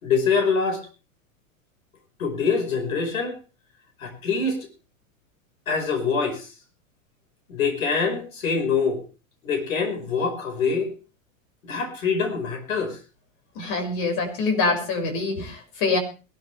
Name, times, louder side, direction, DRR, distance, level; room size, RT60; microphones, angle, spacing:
voice 1, 0.0-0.8 2.2-3.3 4.0-4.6 5.7-6.5 7.5-9.0 9.4-10.9 11.6-13.0 15.4-15.5, left 5 dB, 85° left, 6 dB, 5.4 m, -24 dB
voice 2, 13.5-16.0, left 3 dB, 55° left, 6 dB, 6.5 m, -25 dB
21.5 x 13.5 x 3.4 m, 0.33 s
hypercardioid pair, 105°, 40 cm